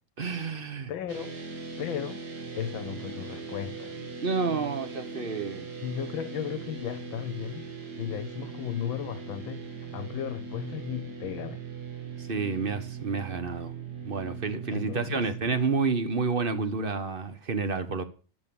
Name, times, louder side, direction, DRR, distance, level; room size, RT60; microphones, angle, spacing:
voice 1, 0.2-0.9 4.2-5.7 12.2-13.7 14.0-18.0, right 4 dB, 35° right, 1.0 m, -29 dB
voice 2, 0.9-1.3 1.8-2.2 2.5-4.0 5.8-7.7 8.0-11.6 14.7-15.3, left 9 dB, 80° left, 1.6 m, -35 dB
sound 1, 1.1-15.5, right 5 dB, 55° right, 2.3 m, -40 dB
11.0 x 7.8 x 7.0 m
omnidirectional pair, 2.1 m